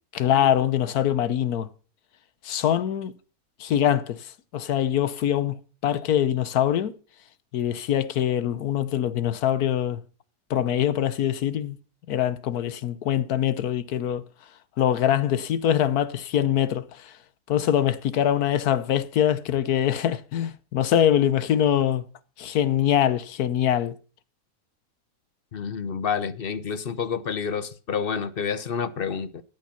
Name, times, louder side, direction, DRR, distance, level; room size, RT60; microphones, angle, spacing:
voice 1, 0.1-1.7 2.4-3.1 3.6-6.9 7.5-10.0 10.5-11.8 12.1-14.2 14.8-17.1 17.5-22.0 22.4-23.9, left 10 dB, 80° left, 1.4 m, -23 dB
voice 2, 25.5-29.4, left 6 dB, 45° left, 0.8 m, -29 dB
14.0 x 8.9 x 5.7 m
omnidirectional pair, 1.6 m